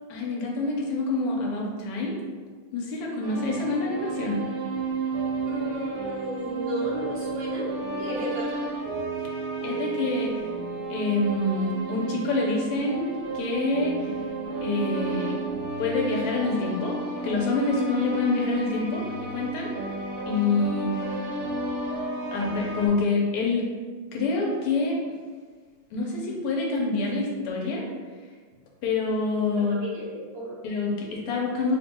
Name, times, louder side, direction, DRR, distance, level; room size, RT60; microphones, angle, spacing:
voice 1, 0.1-2.2 2.7-4.4 9.6-10.3 10.9-13.1 13.3-14.1 14.6-15.4 15.8-17.0 17.2-19.7 20.3-21.2 22.3-23.7 24.1-25.0 25.9-27.9 28.8-29.8 30.6-31.8, left 3 dB, 90° left, -2 dB, 1.6 m, -26 dB
sound 1, 3.2-22.9, right 3 dB, 75° right, 0.8 m, -32 dB
voice 2, 5.4-7.7 7.9-8.6 29.7-30.6, right 1 dB, 40° right, -8 dB, 0.5 m, -33 dB
3.6 x 2.1 x 4.2 m, 1.5 s
omnidirectional pair, 2.4 m